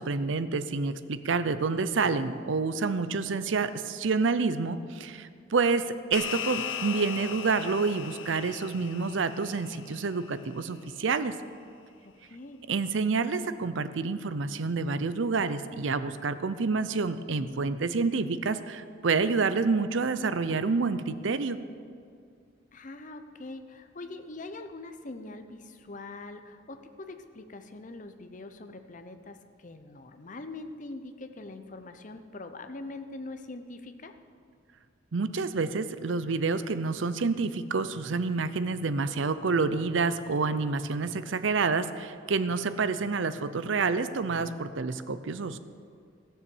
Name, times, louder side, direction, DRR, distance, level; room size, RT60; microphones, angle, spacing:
voice 1, 0.0-11.3 12.7-21.6 35.1-45.6, right 4 dB, 75° right, 13 dB, 0.6 m, -28 dB
sound 1, 6.1-10.8, left 8 dB, 85° left, 0.9 m, -38 dB
voice 2, 12.0-12.6 22.7-34.1, left 2 dB, 40° left, 8 dB, 0.7 m, -43 dB
16.0 x 7.0 x 7.2 m, 2.3 s
head